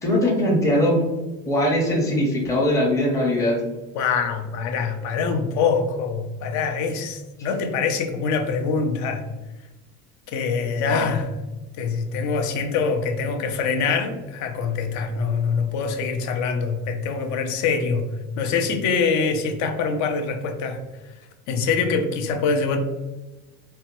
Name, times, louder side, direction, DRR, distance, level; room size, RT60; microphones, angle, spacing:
voice 1, 0.0-1.0 1.5-3.6, left 1 dB, 10° left, -3 dB, 0.6 m, -20 dB
voice 2, 3.9-9.3 10.3-11.3 11.8-18.1 18.4-21.2 21.5-22.8, left 5 dB, 60° left, 6 dB, 0.5 m, -24 dB
4.0 x 2.2 x 2.9 m, 1.1 s
cardioid pair, 145°, 32 cm